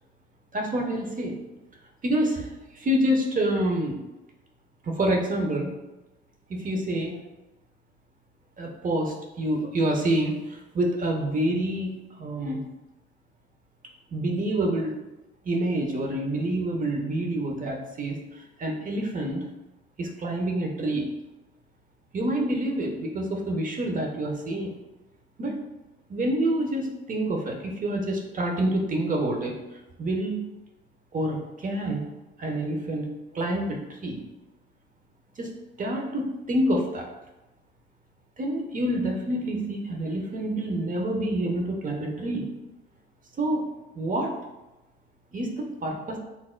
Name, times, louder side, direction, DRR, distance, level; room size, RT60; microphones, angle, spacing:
voice 1, 0.5-1.4 2.0-4.0 4.8-5.7 6.5-7.2 8.6-12.6 14.1-14.9 15.4-19.5 20.0-21.1 22.1-24.7 25.4-25.6 26.1-29.5 30.0-30.4 31.1-32.1 32.4-34.2 35.4-35.5 35.8-37.0 38.4-42.5 43.4-43.6 43.9-44.3 45.3-46.2, right 1 dB, 40° right, 1 dB, 1.0 m, -27 dB
6.3 x 3.8 x 2.2 m, 1.0 s
cardioid pair, 90°, 20 cm